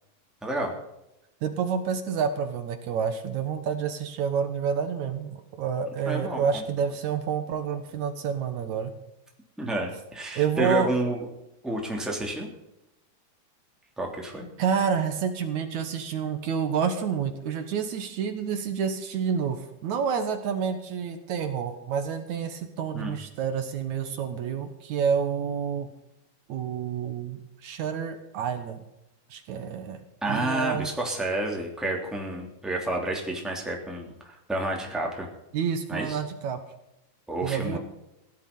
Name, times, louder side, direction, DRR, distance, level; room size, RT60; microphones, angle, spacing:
voice 1, 0.4-0.7 6.0-6.6 9.6-11.2 11.6-12.5 14.0-14.5 22.9-23.2 30.2-35.3 35.9-36.2 37.3-37.8, right 1 dB, ahead, 0 dB, 2.8 m, -30 dB
voice 2, 1.4-8.9 10.4-10.9 14.6-25.9 26.5-28.8 29.3-30.0 30.3-30.9 35.5-36.6 37.4-37.8, right 7 dB, 70° right, 7 dB, 2.5 m, -28 dB
16.5 x 11.5 x 5.5 m, 0.87 s
omnidirectional pair, 3.5 m